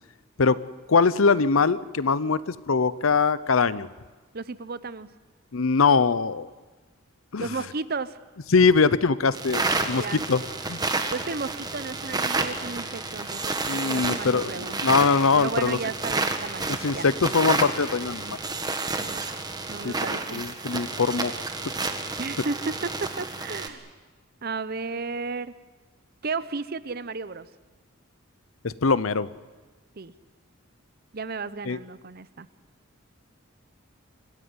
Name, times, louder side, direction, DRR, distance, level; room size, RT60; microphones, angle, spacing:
voice 1, 0.9-3.9 5.5-6.5 7.3-7.5 8.5-10.4 10.7-10.8 13.7-15.8 16.8-18.4 19.8-19.9 20.3-21.3 28.6-29.3 31.6-31.8, left 4 dB, 75° left, 17 dB, 0.7 m, -22 dB
voice 2, 4.3-5.1 7.4-8.2 9.9-10.2 11.1-15.0 15.3-16.7 16.9-17.1 19.0-19.2 19.7-20.4 22.2-23.9 24.4-25.5 26.2-27.5 30.0-30.1 31.1-32.5, right 4 dB, 45° right, 16 dB, 0.7 m, -33 dB
sound 1, 9.3-23.7, right 3 dB, 20° right, 1.4 m, -30 dB
26.0 x 15.5 x 9.7 m, 1.3 s
head